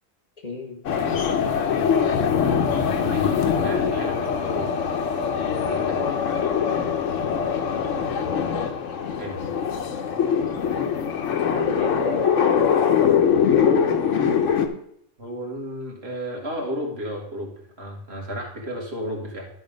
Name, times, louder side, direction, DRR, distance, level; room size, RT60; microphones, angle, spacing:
voice 1, 0.4-0.8 1.6-1.7 8.3-8.4 11.5-12.3 13.5-14.0, left 2 dB, 35° left, 1 dB, 1.2 m, -31 dB
sound 1, 0.8-14.7, left 7 dB, 85° left, 1.2 m, -22 dB
voice 2, 2.9-4.7 5.7-6.2 9.2-9.4 15.2-19.5, equal, 55° right, 0 dB, 2.2 m, -33 dB
12.5 x 4.3 x 5.1 m, 0.69 s
omnidirectional pair, 1.3 m